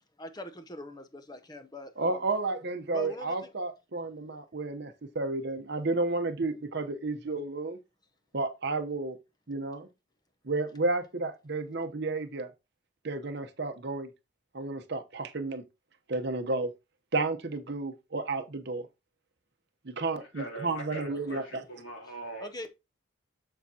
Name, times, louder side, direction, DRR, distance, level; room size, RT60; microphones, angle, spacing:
voice 1, 0.2-2.3 2.9-3.5 21.1-21.4 22.4-22.7, left 1 dB, 20° left, 0.7 m, -42 dB
voice 2, 2.0-7.8 8.3-9.2 9.5-9.9 10.4-12.5 13.0-14.1 14.5-15.6 16.1-16.7 17.1-18.9 19.8-21.4, right 3 dB, 50° right, 0.9 m, -32 dB
voice 3, 20.2-22.5, right 2 dB, 75° left, 3.4 m, -41 dB
7.1 x 7.0 x 2.8 m
head